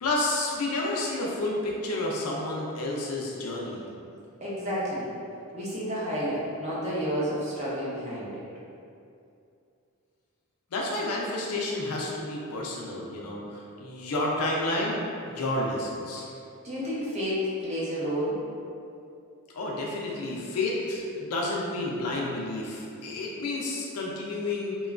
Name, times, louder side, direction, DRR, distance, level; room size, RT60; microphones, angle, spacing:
voice 1, 0.0-3.8 10.7-15.0 15.3-16.3 19.5-24.8, left 2 dB, 85° left, -3 dB, 0.5 m, -30 dB
voice 2, 4.4-5.1 5.5-8.4 16.6-18.4, equal, 30° right, -7 dB, 0.5 m, -30 dB
2.9 x 2.2 x 2.4 m, 2.6 s
head